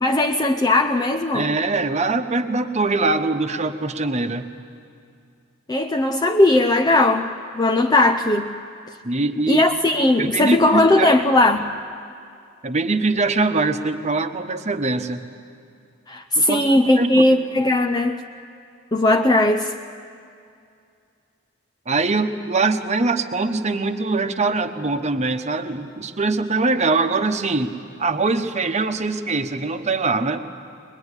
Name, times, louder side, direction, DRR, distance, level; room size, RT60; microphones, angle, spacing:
voice 1, 0.0-1.5 5.7-7.3 7.5-8.5 9.5-11.7 16.1-18.2 18.9-19.7, left 2 dB, 20° left, 5 dB, 0.6 m, -18 dB
voice 2, 1.3-4.4 9.0-9.6 10.2-11.1 12.6-15.2 16.4-16.7 17.0-17.2 21.9-27.7 28.0-30.4, right 3 dB, 35° right, 7 dB, 1.1 m, -22 dB
23.0 x 21.5 x 9.8 m, 2.4 s
head